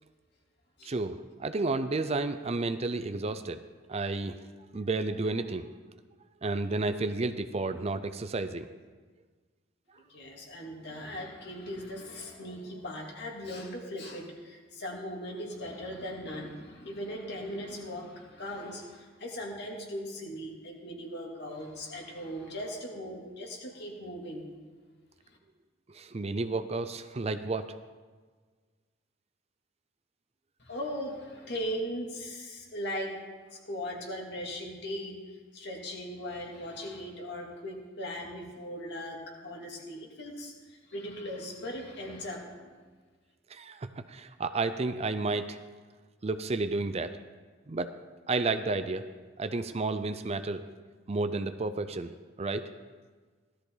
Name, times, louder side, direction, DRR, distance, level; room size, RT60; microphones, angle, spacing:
voice 1, 0.8-3.6 3.9-4.4 4.7-5.7 6.4-8.7 25.9-27.7 43.5-45.6 46.2-47.1 47.7-47.9 48.3-49.0 49.4-50.6 51.1-52.7, right 3 dB, 30° right, 10 dB, 0.5 m, -31 dB
voice 2, 10.1-24.4 30.6-33.2 33.5-42.7, equal, 60° left, -1 dB, 2.6 m, -39 dB
16.5 x 13.0 x 3.9 m, 1.4 s
head